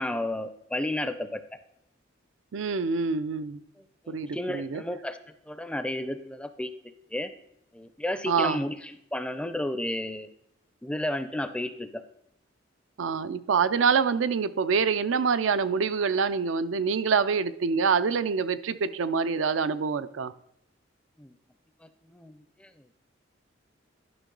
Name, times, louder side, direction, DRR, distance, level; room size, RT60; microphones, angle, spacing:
voice 1, 0.0-1.4 4.1-5.2 5.5-6.7 7.1-7.3 7.7-8.7 9.1-10.3 10.8-12.0 21.2-21.3 22.1-22.7, left 1 dB, 5° left, 10 dB, 0.4 m, -32 dB
voice 2, 2.5-3.6 4.1-4.8 8.3-8.7 13.0-20.3, right 5 dB, 85° right, 12 dB, 0.5 m, -26 dB
11.0 x 6.0 x 3.8 m, 0.77 s
head